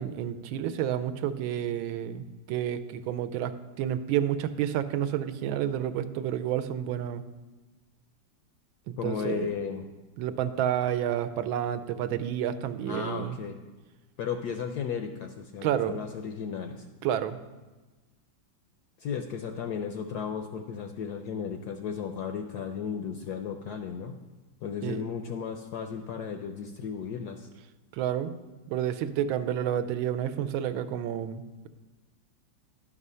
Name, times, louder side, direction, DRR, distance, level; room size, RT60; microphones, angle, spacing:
voice 1, 0.0-7.2 8.9-9.5 10.2-13.4 15.6-16.0 17.0-17.4 24.8-25.0 27.9-28.3 28.7-31.7, right 10 dB, 85° right, 10 dB, 1.4 m, -30 dB
voice 2, 9.0-9.8 12.9-13.6 14.2-16.9 19.0-24.1 24.6-27.5, left 7 dB, 75° left, 5 dB, 0.9 m, -34 dB
11.5 x 4.9 x 5.5 m, 1.2 s
omnidirectional pair, 2.2 m